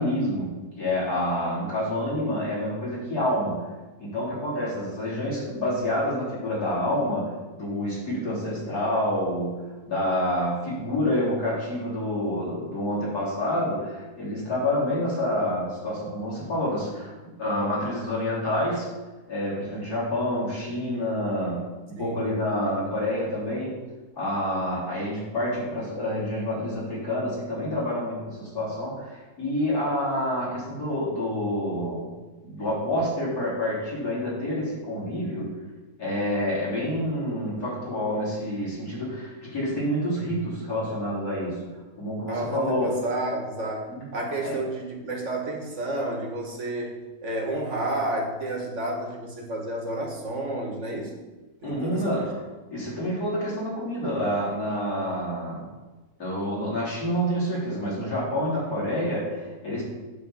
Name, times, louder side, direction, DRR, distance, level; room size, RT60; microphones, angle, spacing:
voice 1, 0.0-3.7 4.0-9.6 9.8-18.9 19.3-21.6 21.9-23.8 24.2-32.1 32.4-35.5 36.0-41.7 42.0-43.0 43.9-44.0 44.4-44.6 51.6-52.4 52.7-55.6 56.2-59.8, left 1 dB, 65° left, -7 dB, 4.0 m, -28 dB
voice 2, 22.0-22.3 42.3-47.0 47.2-51.1 51.6-52.2, right 1 dB, 50° right, 0 dB, 1.8 m, -31 dB
8.8 x 4.2 x 7.2 m, 1.2 s
omnidirectional pair, 1.7 m